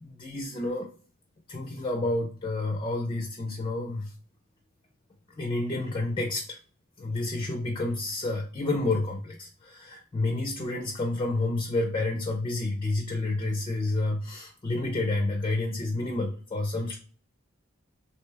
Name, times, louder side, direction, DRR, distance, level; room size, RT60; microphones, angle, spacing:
voice 1, 0.0-0.9 1.5-4.1 5.3-6.6 7.0-17.0, left 2 dB, 25° left, 3 dB, 0.4 m, -29 dB
3.2 x 2.7 x 3.2 m, 0.42 s
head